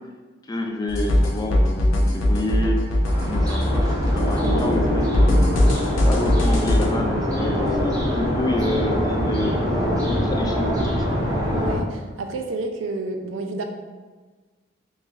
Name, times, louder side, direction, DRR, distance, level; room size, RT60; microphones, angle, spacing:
voice 1, 0.5-2.8 3.2-5.4 6.0-11.1, left 1 dB, 20° left, 1 dB, 0.3 m, -28 dB
sound 1, 0.9-6.9, left 1 dB, 85° left, 0.6 m, -20 dB
sound 2, 3.0-11.8, equal, 20° right, 0.7 m, -24 dB
voice 2, 11.6-13.6, right 3 dB, 75° right, 5 dB, 0.4 m, -30 dB
3.1 x 2.6 x 3.7 m, 1.3 s
head